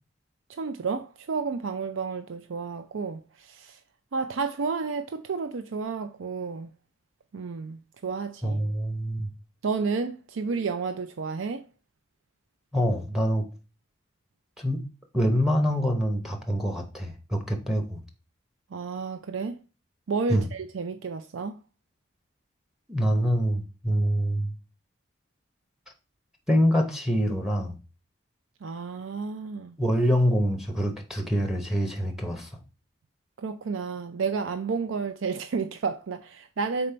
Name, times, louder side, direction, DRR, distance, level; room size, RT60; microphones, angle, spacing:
voice 1, 0.6-3.8 4.1-6.7 7.3-8.6 9.6-11.6 18.7-19.5 20.1-21.6 28.6-29.7 33.4-36.9, right 4 dB, 85° right, 0.5 m, -31 dB
voice 2, 8.4-9.3 12.7-13.4 14.6-14.9 15.1-18.0 20.3-20.4 22.9-24.5 26.5-27.8 29.8-32.5, equal, 5° right, 0.8 m, -25 dB
5.2 x 4.2 x 4.3 m
head